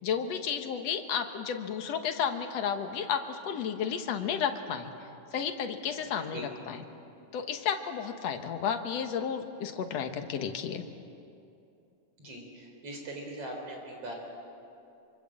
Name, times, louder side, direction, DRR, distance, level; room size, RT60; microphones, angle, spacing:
voice 1, 0.0-4.9 5.3-6.8 7.3-10.8, left 7 dB, 65° left, 6 dB, 2.3 m, -32 dB
voice 2, 12.2-14.1, right 1 dB, 50° right, 1 dB, 5.2 m, -41 dB
25.5 x 24.5 x 7.6 m, 2.7 s
omnidirectional pair, 3.5 m